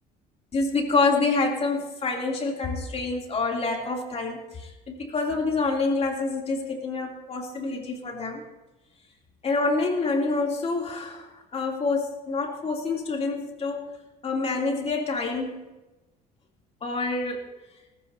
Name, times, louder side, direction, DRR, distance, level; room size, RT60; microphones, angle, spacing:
voice 1, 0.5-8.4 9.4-13.9 14.2-15.7 16.8-17.4, left 3 dB, 35° left, 0 dB, 3.1 m, -27 dB
19.0 x 14.5 x 2.8 m, 1.1 s
cardioid pair, 110°, 17 cm